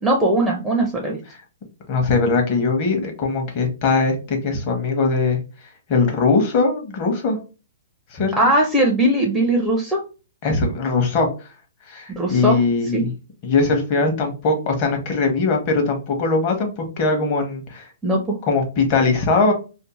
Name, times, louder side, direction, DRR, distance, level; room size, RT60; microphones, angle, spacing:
voice 1, 0.0-1.2 8.4-10.0 12.2-12.6 12.9-13.0 18.0-18.3, right 1 dB, 5° right, 0 dB, 0.4 m, -19 dB
voice 2, 1.9-5.4 5.9-7.4 8.1-8.3 10.4-11.5 11.9-13.1 13.4-17.9 18.5-19.5, left 3 dB, 40° left, 3 dB, 0.8 m, -20 dB
2.5 x 2.0 x 2.9 m, 0.32 s
hypercardioid pair, 150°, 0 cm